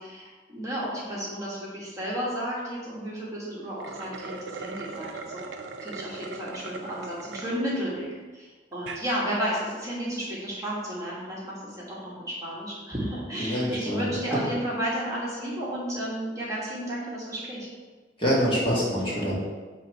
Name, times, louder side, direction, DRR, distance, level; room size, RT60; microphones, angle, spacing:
voice 1, 0.0-5.4 5.8-8.1 8.3-17.7, equal, 20° right, -6 dB, 1.3 m, -32 dB
sound 1, 3.7-7.6 8.1-8.2 8.7-9.1, right 4 dB, 90° right, 0.5 m, -39 dB
voice 2, 13.4-14.0 18.2-19.3, equal, 30° left, -7 dB, 1.8 m, -25 dB
6.9 x 3.1 x 4.6 m, 1.4 s
head